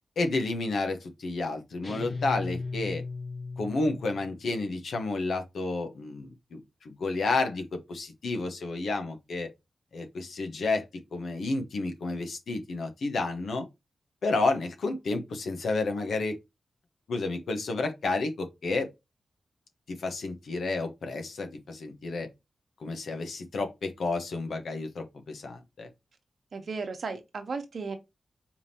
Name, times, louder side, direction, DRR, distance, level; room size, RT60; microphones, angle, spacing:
voice 1, 0.2-3.0 3.6-9.5 9.9-13.7 14.2-16.3 17.1-18.9 19.9-22.3 22.8-25.9, left 3 dB, 80° left, 1.2 m, -31 dB
sound 1, 1.8-4.4, left 3 dB, 35° left, 1.1 m, -36 dB
voice 2, 26.5-28.0, right 4 dB, 55° right, 1.1 m, -35 dB
4.8 x 3.6 x 2.8 m
wide cardioid pair, 145°, 0 cm